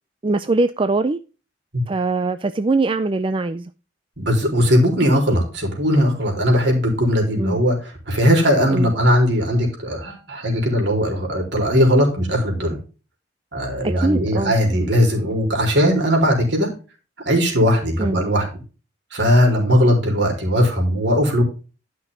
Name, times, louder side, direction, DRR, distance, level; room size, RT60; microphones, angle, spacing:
voice 1, 0.2-1.2 1.9-3.7 7.4-7.6 8.7-8.9 13.8-14.5 18.0-18.2, right 3 dB, 25° right, 0.4 m, -22 dB
voice 2, 4.2-12.8 13.5-16.7 17.3-18.5 19.1-21.4, equal, 65° right, 4.0 m, -18 dB
12.0 x 6.1 x 3.7 m
head